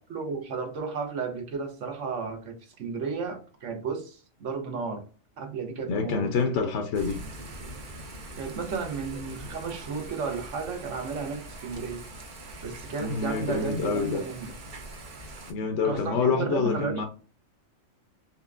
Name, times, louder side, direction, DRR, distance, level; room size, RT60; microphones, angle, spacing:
voice 1, 0.1-5.0 5.4-6.3 8.4-12.1 12.6-14.5 15.8-17.0, right 5 dB, 70° right, 1.2 m, -33 dB
voice 2, 5.9-7.2 13.0-14.2 15.5-17.0, left 5 dB, 70° left, 0.9 m, -27 dB
Thunder / Rain, 6.9-15.5, right 1 dB, 50° right, 0.7 m, -42 dB
4.3 x 3.4 x 2.4 m
omnidirectional pair, 1.3 m